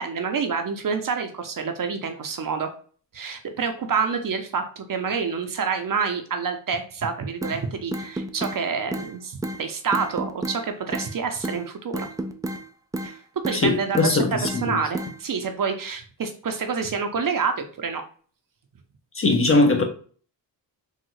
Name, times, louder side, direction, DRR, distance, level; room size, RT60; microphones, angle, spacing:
voice 1, 0.0-2.7 3.1-12.1 13.0-18.0, right 5 dB, 45° right, 0.7 m, -28 dB
sound 1, 7.4-7.6 7.9-8.6 8.9-9.1 9.4-9.6 9.9-10.6 10.9-11.1 11.4-11.6 11.9-12.6 12.9-13.1 13.4-13.6 13.9-14.6 14.9-15.1, right 1 dB, 10° right, 0.3 m, -30 dB
voice 2, 13.5-14.8 19.1-19.8, left 2 dB, 30° left, 0.8 m, -20 dB
3.6 x 2.0 x 3.1 m
supercardioid pair, 45°, 46 cm